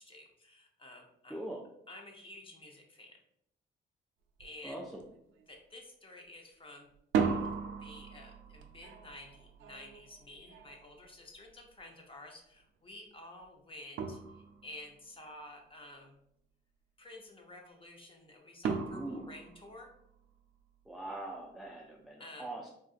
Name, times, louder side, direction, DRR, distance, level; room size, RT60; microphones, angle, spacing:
voice 1, 0.0-1.5 1.9-3.2 4.4-4.8 5.5-6.9 7.8-16.1 17.0-19.9 22.2-22.5, left 1 dB, 25° left, 1 dB, 0.7 m, -51 dB
voice 2, 1.3-1.6 4.6-5.0 18.9-19.3 20.9-22.7, right 1 dB, ahead, 0 dB, 0.3 m, -42 dB
sound 1, 4.4-4.5 4.9-5.4 6.9-11.8 13.4-13.5 14.0-14.9 18.6-20.4, right 6 dB, 85° right, 0.4 m, -37 dB
3.7 x 2.5 x 2.4 m, 0.76 s
cardioid pair, 90°, 20 cm